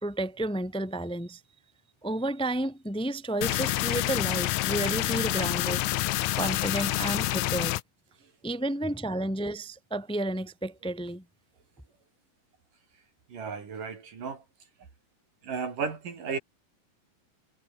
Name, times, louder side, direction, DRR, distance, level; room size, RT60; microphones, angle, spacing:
voice 1, 0.0-1.4 2.0-5.8 6.4-7.8 8.4-11.2, right 1 dB, ahead, 2.5 m, -31 dB
sound 1, 3.4-7.8, left 17 dB, 85° left, 1.7 m, -28 dB
voice 2, 13.3-14.4 15.4-16.4, right 5 dB, 60° right, 5.5 m, -34 dB
omnidirectional pair, 4.3 m